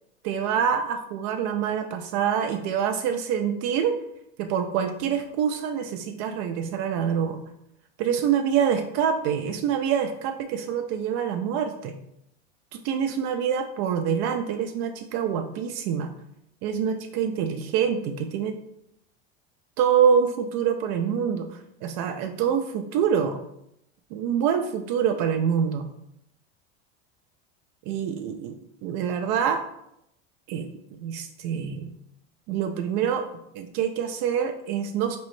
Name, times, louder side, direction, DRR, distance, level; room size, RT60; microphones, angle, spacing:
voice 1, 0.2-4.0 4.4-7.4 8.0-11.9 12.7-16.1 16.6-18.6 19.8-23.4 24.1-25.9 27.9-29.6 30.5-31.9 32.5-33.3 33.5-35.2, right 8 dB, 55° right, 6 dB, 0.4 m, -26 dB
4.0 x 3.0 x 3.1 m, 0.79 s
supercardioid pair, 120°, 32 cm